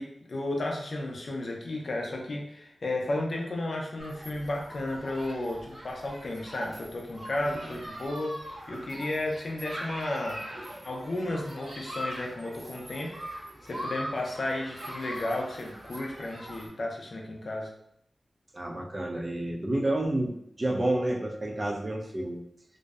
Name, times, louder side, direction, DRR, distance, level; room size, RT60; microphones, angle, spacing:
voice 1, 0.0-10.4 10.8-17.7, left 1 dB, 60° left, 0 dB, 0.4 m, -33 dB
Human group actions, 4.0-16.7, equal, 65° right, 0.9 m, -42 dB
voice 2, 18.5-22.4, right 1 dB, 35° right, 1 dB, 0.4 m, -30 dB
2.5 x 2.0 x 2.3 m, 0.74 s
wide cardioid pair, 85°, 0 cm